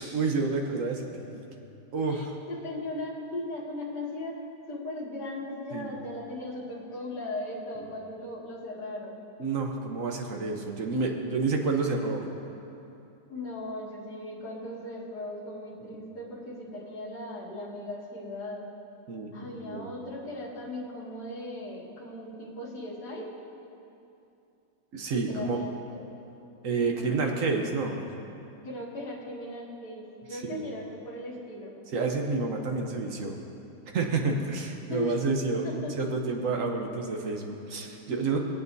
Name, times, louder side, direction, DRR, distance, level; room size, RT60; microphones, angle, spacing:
voice 1, 0.0-1.4 1.9-2.3 5.7-5.9 9.4-12.2 19.1-19.9 24.9-25.6 26.6-28.0 30.3-30.7 31.9-33.3 33.9-38.4, right 4 dB, 55° right, 2 dB, 1.0 m, -29 dB
voice 2, 2.1-4.4 4.7-9.2 13.3-18.6 19.3-23.3 25.3-25.7 26.8-27.2 27.5-27.7 28.6-31.7 34.9-35.2 35.6-35.9, left 1 dB, 50° left, -6 dB, 2.7 m, -38 dB
21.5 x 8.2 x 2.7 m, 2.8 s
omnidirectional pair, 2.3 m